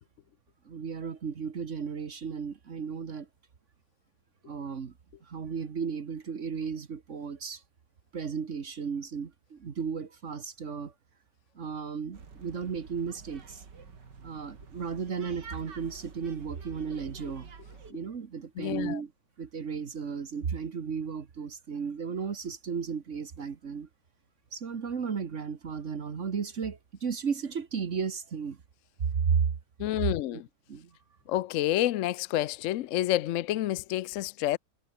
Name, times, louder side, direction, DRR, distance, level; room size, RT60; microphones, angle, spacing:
voice 1, 0.6-3.3 4.4-4.9 5.2-7.6 8.1-10.9 11.5-13.6 14.2-17.5 17.9-19.1 19.4-23.9 24.5-28.6 29.2-29.5 30.3-30.4 30.7-31.0, right 6 dB, 45° right, 1.6 m, -34 dB
sound 1, 12.1-17.9, right 5 dB, 90° right, 3.1 m, -48 dB
voice 2, 18.6-19.0 29.8-30.5 31.3-34.6, left 14 dB, 70° left, 0.7 m, -29 dB
omnidirectional pair, 1.8 m